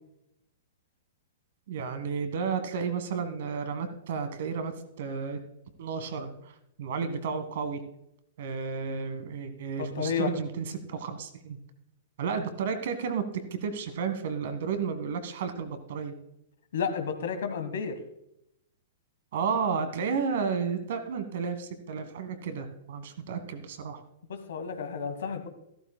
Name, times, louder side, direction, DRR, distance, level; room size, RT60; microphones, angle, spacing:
voice 1, 1.7-5.4 5.8-6.5 6.8-7.8 8.4-11.6 12.2-13.2 13.5-16.1 19.3-24.0, right 6 dB, 55° right, 9 dB, 1.5 m, -32 dB
voice 2, 9.8-10.3 16.7-17.9 24.3-25.5, left 6 dB, 60° left, 8 dB, 1.4 m, -31 dB
14.5 x 13.0 x 2.2 m, 0.82 s
figure-of-eight pair, 105°, 0 cm